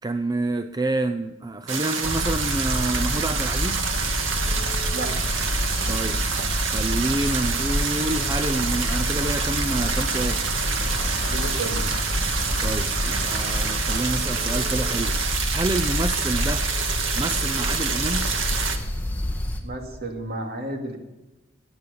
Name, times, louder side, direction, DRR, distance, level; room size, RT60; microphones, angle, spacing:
voice 1, 0.0-3.9 5.9-6.2 6.6-10.4 12.6-16.7 17.1-18.3, right 2 dB, 20° right, 9 dB, 0.5 m, -28 dB
sound 1, 1.7-18.8, right 5 dB, 85° right, 1.8 m, -27 dB
sound 2, 2.0-19.6, left 1 dB, 10° left, 1.7 m, -28 dB
sound 3, 9.5-17.7, left 3 dB, 55° left, 2.3 m, -44 dB
voice 2, 11.2-11.8 19.6-21.0, right 1 dB, 55° right, 3 dB, 2.5 m, -32 dB
17.5 x 9.8 x 5.3 m, 1.1 s
head